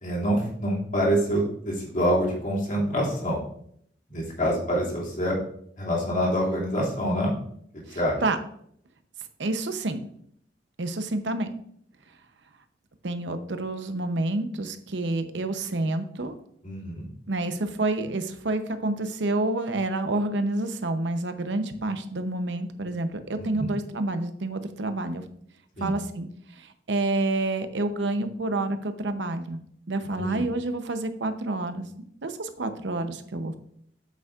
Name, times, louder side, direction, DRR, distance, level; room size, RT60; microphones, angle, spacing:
voice 1, 0.0-3.4 4.1-5.4 5.8-7.3 7.7-8.2 16.6-17.1 23.5-23.7 25.8-26.0 30.2-30.4, equal, 45° left, -4 dB, 2.5 m, -26 dB
voice 2, 7.9-8.4 9.4-10.0 10.8-11.5 13.0-16.4 17.3-25.3 25.8-26.3 26.6-29.6 29.9-31.9 32.2-33.6, right 2 dB, 70° right, 9 dB, 0.8 m, -28 dB
8.2 x 8.0 x 2.5 m, 0.67 s
head